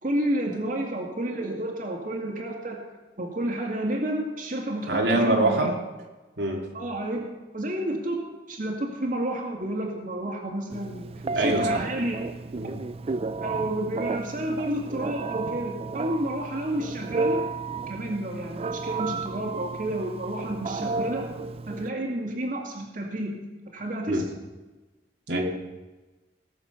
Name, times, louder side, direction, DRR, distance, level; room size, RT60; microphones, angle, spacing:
voice 1, 0.0-2.8 3.2-5.7 6.7-12.2 13.4-17.4 17.9-21.3 21.7-23.4 23.7-24.2 25.3-25.5, right 1 dB, 50° right, 0 dB, 2.3 m, -30 dB
voice 2, 4.9-5.7 6.4-6.7 11.3-11.8 12.6-12.8 24.1-24.2 25.3-25.5, right 2 dB, 75° right, -1 dB, 2.2 m, -24 dB
Telephone, 10.7-21.9, right 3 dB, 35° right, 0.3 m, -32 dB
18.5 x 7.1 x 6.9 m, 1.2 s
head